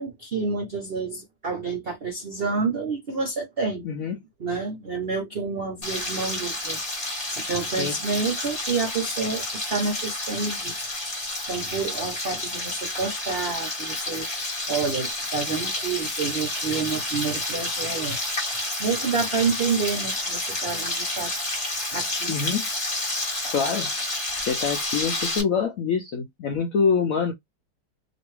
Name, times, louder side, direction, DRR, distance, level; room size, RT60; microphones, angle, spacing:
voice 1, 0.0-3.9 4.4-6.8 7.3-10.9 11.5-18.2 18.8-21.3 21.9-22.5, right 4 dB, 60° right, 0.6 m, -29 dB
voice 2, 3.8-4.2 7.8-7.9 22.3-22.6 23.5-23.9 24.5-27.3, left 6 dB, 70° left, 0.8 m, -25 dB
Frying (food), 5.8-25.4, left 1 dB, 25° left, 1.3 m, -30 dB
3.0 x 2.6 x 3.0 m
omnidirectional pair, 2.1 m